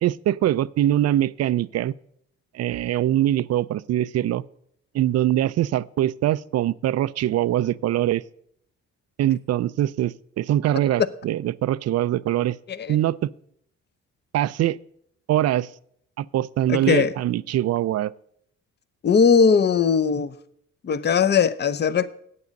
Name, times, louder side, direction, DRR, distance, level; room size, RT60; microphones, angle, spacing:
voice 1, 0.0-1.9 2.5-4.4 4.9-8.2 9.2-12.6 12.9-13.3 14.3-14.8 15.3-15.7 16.2-18.1, right 13 dB, 55° right, 0.4 m, -23 dB
voice 2, 16.7-17.1 19.0-20.3 20.8-22.1, left 6 dB, 35° left, 0.6 m, -19 dB
9.6 x 8.4 x 5.2 m
cardioid pair, 90°, 30 cm